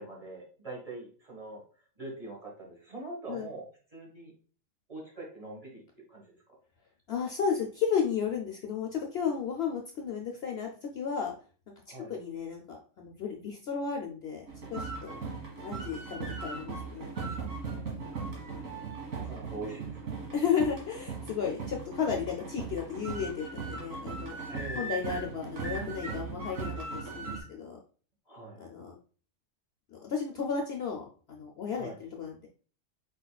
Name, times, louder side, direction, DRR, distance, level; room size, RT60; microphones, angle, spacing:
voice 1, 0.0-1.6 2.0-3.6 3.9-4.3 4.9-5.8 6.1-6.6 11.9-12.1 15.1-15.5 17.6-20.1 24.5-25.4 28.3-28.6 31.7-32.0, right 2 dB, 25° right, -3 dB, 1.6 m, -44 dB
voice 2, 7.1-11.3 12.1-14.4 14.7-15.1 15.6-17.1 20.3-24.4 24.7-27.8 28.6-28.9 30.0-32.5, left 6 dB, 60° left, 1 dB, 0.8 m, -33 dB
sound 1, 14.5-27.4, right 4 dB, 90° right, 1.9 m, -38 dB
5.0 x 4.1 x 2.3 m, 0.40 s
omnidirectional pair, 1.4 m